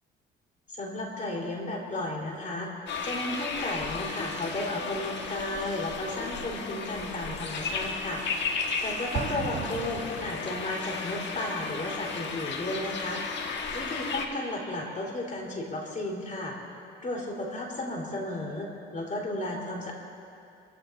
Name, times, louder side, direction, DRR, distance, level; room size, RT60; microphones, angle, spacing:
voice 1, 0.7-2.7 3.0-8.2 8.8-13.2 13.7-16.6 17.0-19.9, left 1 dB, 40° left, -2 dB, 4.0 m, -33 dB
sound 1, 2.9-14.3, left 4 dB, 65° left, 1.5 m, -34 dB
Explosion, 9.1-10.9, right 9 dB, 50° right, 0.6 m, -37 dB
26.5 x 15.5 x 2.7 m, 2.6 s
cardioid pair, 90°, 20 cm